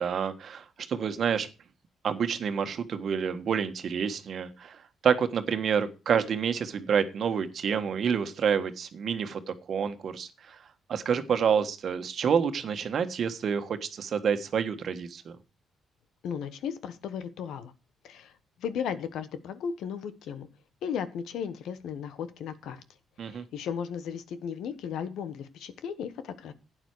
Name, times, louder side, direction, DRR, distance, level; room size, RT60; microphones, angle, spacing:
voice 1, 0.0-1.5 2.0-10.6 10.9-15.4 23.2-23.4, right 7 dB, 55° right, 1.5 m, -28 dB
voice 2, 16.2-17.7 18.0-18.3 18.6-20.5 20.8-22.8 23.2-26.5, left 7 dB, 80° left, 1.2 m, -35 dB
11.5 x 8.9 x 4.8 m
cardioid pair, 90°, 0 cm